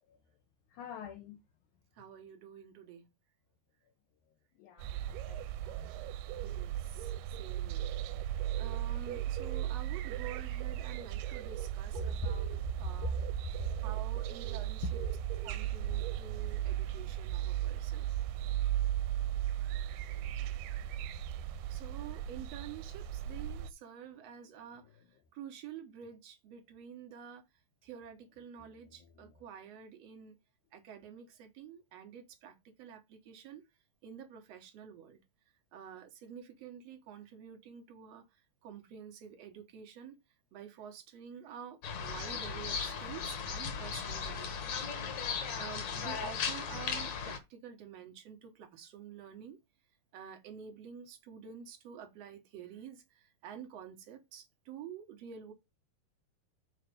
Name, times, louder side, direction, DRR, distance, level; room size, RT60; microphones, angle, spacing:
voice 1, 0.7-1.4 4.6-5.0 5.3-5.9 12.0-13.8 14.8-14.9 28.6-28.7 29.0-29.4, right 1 dB, 80° left, 1.8 m, -42 dB
voice 2, 1.9-3.1 6.4-13.2 13.8-15.0 15.4-18.1 21.7-25.0 25.3-27.4 27.8-30.3 30.7-33.6 34.0-35.2 35.7-38.2 38.6-40.2 40.5-44.9 45.6-49.6 50.1-55.5, right 8 dB, 75° right, 1.5 m, -49 dB
sound 1, 4.8-23.7, right 12 dB, 90° right, 2.6 m, -36 dB
sound 2, 41.8-47.4, left 6 dB, 60° left, 2.0 m, -37 dB
6.5 x 4.3 x 5.1 m
omnidirectional pair, 4.5 m